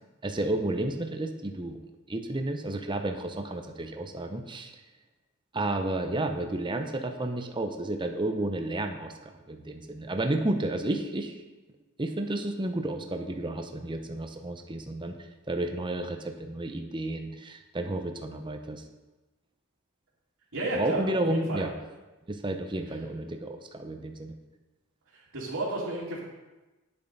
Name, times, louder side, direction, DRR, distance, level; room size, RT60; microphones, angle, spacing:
voice 1, 0.2-1.8 2.1-4.7 5.5-11.4 12.0-15.1 15.5-18.8 20.7-21.7 22.3-24.3, right 1 dB, 20° right, 5 dB, 0.8 m, -31 dB
voice 2, 20.5-21.6 25.1-26.2, right 2 dB, 65° right, -11 dB, 2.6 m, -32 dB
10.5 x 7.1 x 5.4 m, 1.1 s
head